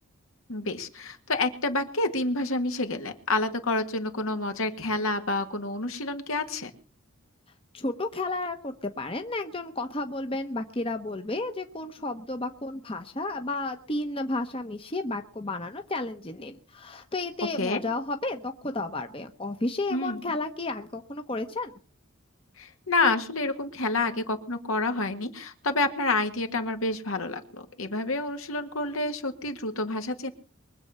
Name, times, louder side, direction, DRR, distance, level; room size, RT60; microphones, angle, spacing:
voice 1, 0.5-6.7 17.6-17.8 19.9-20.2 22.6-30.3, left 2 dB, 75° left, 6 dB, 1.8 m, -28 dB
voice 2, 7.7-21.7, left 2 dB, 25° left, 6 dB, 1.0 m, -32 dB
23.5 x 7.9 x 5.6 m, 0.39 s
head